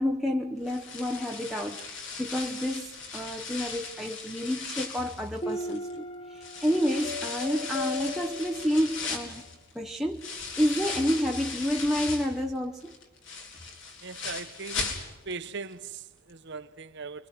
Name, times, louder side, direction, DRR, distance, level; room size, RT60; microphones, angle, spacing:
voice 1, 0.0-9.4 9.7-13.0, equal, ahead, 1.0 m, -29 dB
sound 1, 0.6-5.9 6.4-12.4 12.8-15.4 15.7-15.8 16.3-16.4, left 4 dB, 60° left, 4.3 m, -38 dB
sound 2, 5.4-9.2, left 2 dB, 25° left, 1.3 m, -37 dB
voice 2, 14.0-14.9 15.2-17.3, right 4 dB, 55° right, 1.1 m, -39 dB
29.5 x 23.5 x 6.1 m
head